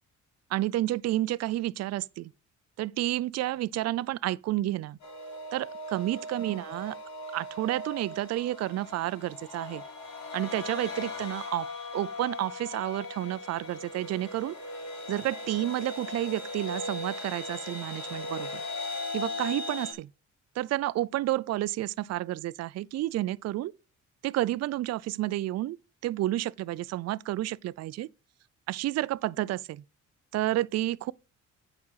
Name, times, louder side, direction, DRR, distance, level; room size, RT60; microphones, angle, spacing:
voice 1, 0.5-2.3 2.8-5.0 5.5-7.0 7.3-9.8 10.3-11.7 11.9-14.6 15.1-18.6 19.1-20.1 20.6-23.7 24.2-25.8 26.0-28.1 28.7-29.8 30.3-31.1, right 15 dB, 60° right, 0.4 m, -30 dB
sound 1, 5.0-19.9, left 2 dB, 65° left, 3.2 m, -38 dB
8.6 x 5.0 x 5.6 m
cardioid pair, 90°, 30 cm